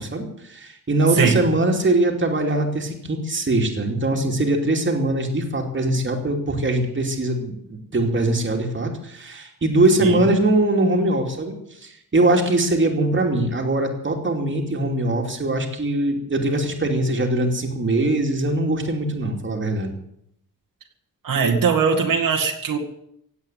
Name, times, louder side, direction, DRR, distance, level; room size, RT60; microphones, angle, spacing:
voice 1, 0.0-11.5 11.8-19.9, right 2 dB, 35° right, 2 dB, 2.7 m, -22 dB
voice 2, 21.2-22.8, right 5 dB, 75° right, 0 dB, 2.2 m, -20 dB
17.0 x 8.5 x 9.3 m, 0.75 s
wide cardioid pair, 160°, 34 cm